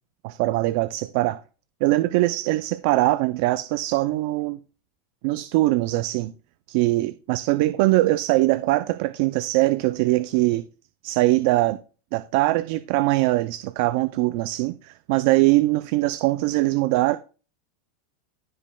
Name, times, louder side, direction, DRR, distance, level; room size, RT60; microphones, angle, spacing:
voice 1, 0.2-1.4 1.8-4.6 5.2-6.3 6.7-10.6 11.0-11.8 12.1-17.2, right 18 dB, 55° right, 0.4 m, -22 dB
15.5 x 5.1 x 2.3 m
supercardioid pair, 150°, 0 cm